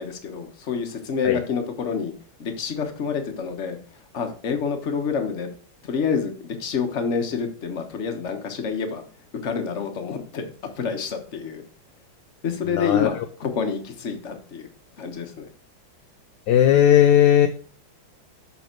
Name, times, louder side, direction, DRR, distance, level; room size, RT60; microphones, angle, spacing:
voice 1, 0.0-2.1 2.4-3.8 4.1-5.5 5.8-9.0 9.4-10.4 10.8-11.6 12.4-14.7 15.0-15.5, left 6 dB, 45° left, 6 dB, 1.3 m, -28 dB
voice 2, 12.8-13.1 16.5-17.5, left 10 dB, 70° left, 7 dB, 1.1 m, -16 dB
7.0 x 4.1 x 5.8 m, 0.41 s
omnidirectional pair, 2.1 m